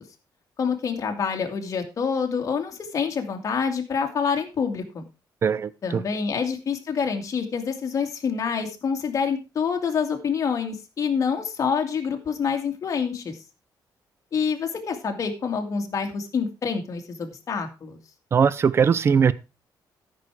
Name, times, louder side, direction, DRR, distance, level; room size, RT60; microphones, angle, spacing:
voice 1, 0.6-5.0 5.8-13.4 14.3-18.0, left 6 dB, 40° left, 4 dB, 2.3 m, -27 dB
voice 2, 5.4-6.0 18.3-19.3, right 6 dB, 30° right, 18 dB, 0.5 m, -20 dB
13.5 x 6.4 x 4.8 m, 0.29 s
cardioid pair, 150°, 8 cm